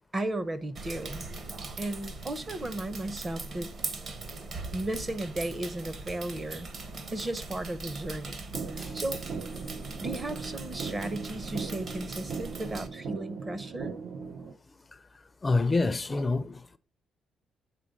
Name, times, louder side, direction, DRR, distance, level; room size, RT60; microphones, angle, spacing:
voice 1, 0.1-1.3 1.8-3.7 4.7-6.7 7.1-8.5 8.7-9.2 10.0-14.0, right 1 dB, 30° right, 0.7 m, -35 dB
sound 1, 0.8-12.9, right 3 dB, 55° right, 1.3 m, -40 dB
sound 2, 8.5-14.5, right 5 dB, 70° right, 0.7 m, -39 dB
voice 2, 15.4-16.8, left 3 dB, 25° left, 0.4 m, -27 dB
8.4 x 3.9 x 5.1 m
cardioid pair, 90°, 0 cm